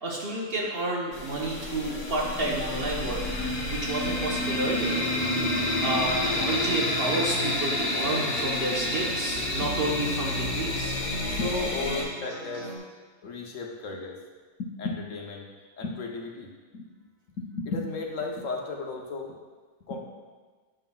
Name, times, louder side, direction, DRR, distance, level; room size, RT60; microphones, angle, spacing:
voice 1, 0.0-5.0 5.8-11.0, right 2 dB, 50° right, -3 dB, 1.0 m, -30 dB
sound 1, 1.1-12.0, left 1 dB, 55° left, 1.6 m, -29 dB
sound 2, 4.8-12.8, equal, 70° right, 2.2 m, -42 dB
voice 2, 11.3-12.7 13.2-14.2 14.6-15.5 15.8-16.8 17.4-19.3 19.9-20.0, left 3 dB, 70° left, 1 dB, 1.2 m, -34 dB
8.9 x 5.6 x 2.3 m, 1.4 s
omnidirectional pair, 1.4 m